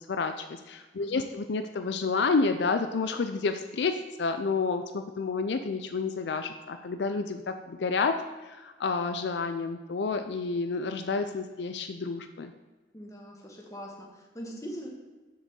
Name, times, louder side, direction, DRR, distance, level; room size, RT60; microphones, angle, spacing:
voice 1, 0.0-12.5, left 4 dB, 70° left, 8 dB, 0.5 m, -30 dB
voice 2, 1.0-1.3 12.9-14.9, equal, 20° left, -1 dB, 1.5 m, -42 dB
7.0 x 5.2 x 6.7 m, 1.3 s
head